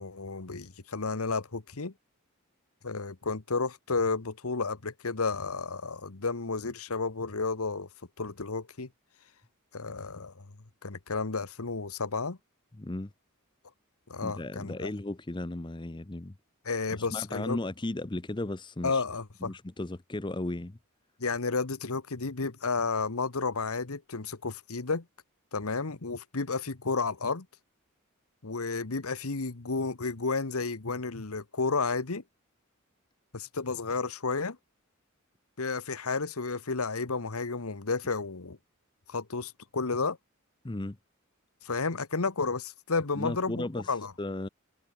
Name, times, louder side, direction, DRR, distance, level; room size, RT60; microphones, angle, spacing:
voice 1, 0.0-1.9 2.8-7.9 8.2-8.9 9.7-10.4 10.8-12.4 14.1-14.9 16.6-17.6 18.8-19.5 21.2-25.0 25.5-27.5 28.4-32.2 33.3-34.6 35.6-38.6 39.1-40.2 41.6-44.1, left 4 dB, 85° left, 1.3 m, -32 dB
voice 2, 12.8-13.1 14.2-16.3 16.9-19.0 19.4-20.8 40.6-41.0 43.2-43.9 44.2-44.5, left 2 dB, 20° left, 0.7 m, -35 dB
head